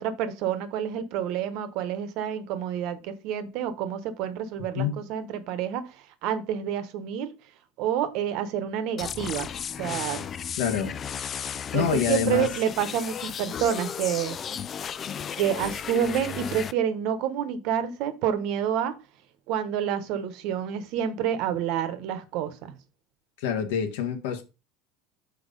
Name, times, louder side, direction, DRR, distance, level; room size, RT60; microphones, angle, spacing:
voice 1, 0.0-5.9 6.2-7.3 7.8-9.5 9.8-10.2 11.7-14.4 15.4-19.0 19.5-22.7, right 9 dB, 55° right, 1.1 m, -28 dB
sound 1, 9.0-16.7, left 8 dB, 25° left, 0.3 m, -34 dB
voice 2, 10.6-10.9 11.7-12.5 23.4-24.4, left 8 dB, 80° left, 1.6 m, -26 dB
6.3 x 4.7 x 5.2 m
supercardioid pair, 150°, 0 cm